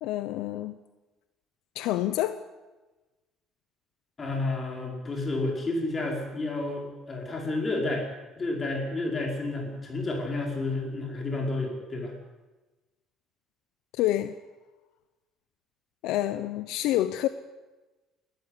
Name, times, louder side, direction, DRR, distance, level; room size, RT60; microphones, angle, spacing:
voice 1, 0.0-0.8 1.7-2.4 14.0-14.4 16.0-17.3, left 14 dB, 75° left, 11 dB, 0.9 m, -27 dB
voice 2, 4.2-8.1 8.4-12.1, left 2 dB, 20° left, 1 dB, 5.2 m, -30 dB
21.0 x 13.5 x 9.8 m, 1.2 s
cardioid pair, 160°, 0 cm